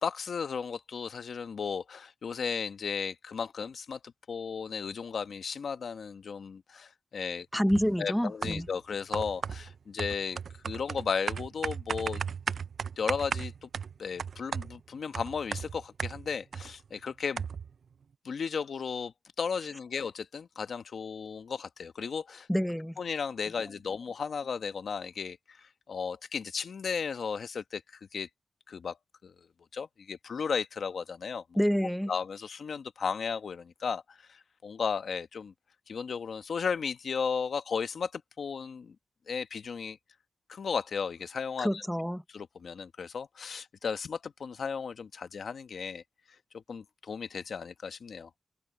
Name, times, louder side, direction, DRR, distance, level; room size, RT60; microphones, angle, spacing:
voice 1, 0.0-4.0 4.3-7.5 8.0-10.4 10.6-12.2 13.0-13.7 14.0-17.5 18.2-22.5 23.0-28.3 28.7-29.0 29.2-29.3 29.7-31.4 32.1-35.5 35.9-38.9 39.3-40.0 40.5-41.8 42.3-46.0 46.5-48.3, left 6 dB, 65° left, 1.1 m, -35 dB
voice 2, 7.5-8.7 22.5-23.0 31.6-32.1 41.6-42.2, equal, ahead, 0.7 m, -28 dB
sound 1, 7.7-8.0 8.4-8.8 9.1-16.7 17.0-17.1 17.4-17.8, right 6 dB, 65° right, 0.3 m, -36 dB
wide cardioid pair, 165°, 0 cm